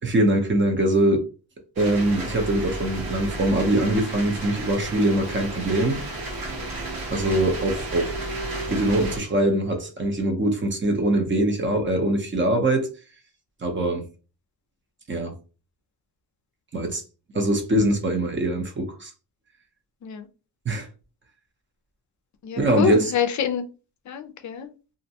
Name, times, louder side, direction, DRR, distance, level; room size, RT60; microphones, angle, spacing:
voice 1, 0.0-1.3 1.8-6.0 7.1-8.1 8.7-12.9 13.6-14.0 15.1-15.3 16.7-17.0 17.3-19.1 20.7-20.9 22.6-23.1, right 1 dB, 30° right, 0.7 m, -22 dB
sound 1, 1.8-9.2, right 2 dB, 65° right, 1.3 m, -32 dB
voice 2, 22.4-23.7 24.1-24.7, left 8 dB, 50° left, 0.5 m, -26 dB
2.5 x 2.1 x 2.7 m
wide cardioid pair, 135°, 39 cm